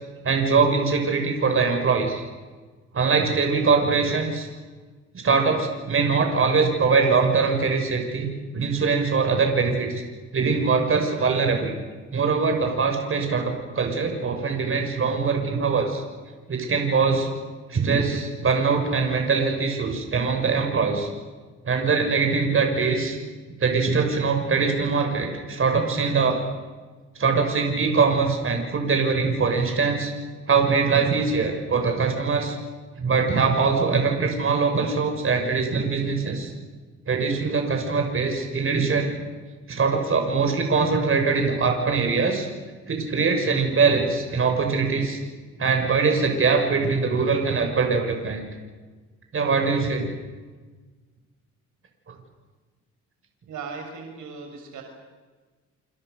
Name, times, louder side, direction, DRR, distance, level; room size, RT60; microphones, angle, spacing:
voice 1, 0.2-2.2 2.9-4.5 5.2-9.9 10.3-11.7 12.1-16.0 16.5-17.3 17.7-21.1 21.6-23.2 23.6-26.4 27.2-30.1 30.5-32.6 33.0-36.5 37.1-39.1 39.7-42.5 42.9-45.2 45.6-48.4 49.3-50.1 52.1-52.2, right 4 dB, 45° right, 3 dB, 6.8 m, -22 dB
voice 2, 53.5-54.8, right 5 dB, 80° right, 3 dB, 6.5 m, -37 dB
29.0 x 27.5 x 6.9 m, 1.3 s
cardioid pair, 90°, 30 cm